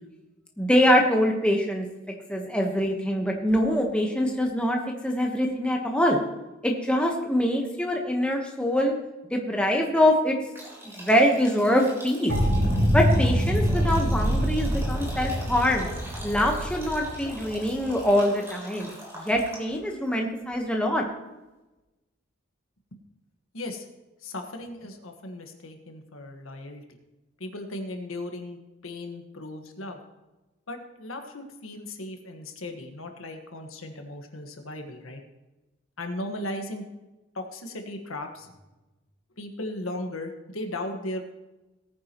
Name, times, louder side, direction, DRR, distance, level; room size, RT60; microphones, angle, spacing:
voice 1, 0.6-1.9 2.3-6.2 6.6-8.9 9.3-10.4 11.0-12.3 12.9-15.9 16.2-21.0, equal, 5° left, 1 dB, 1.1 m, -24 dB
sound 1, 10.5-19.9, equal, 15° right, 3.4 m, -42 dB
sound 2, 12.3-18.0, equal, 65° right, 5.0 m, -25 dB
voice 2, 23.5-23.9 24.2-26.8 27.4-30.0 30.7-35.2 36.0-36.8 37.3-38.5 39.4-41.2, left 1 dB, 80° left, 4 dB, 1.5 m, -36 dB
18.0 x 9.5 x 3.0 m, 1.1 s
head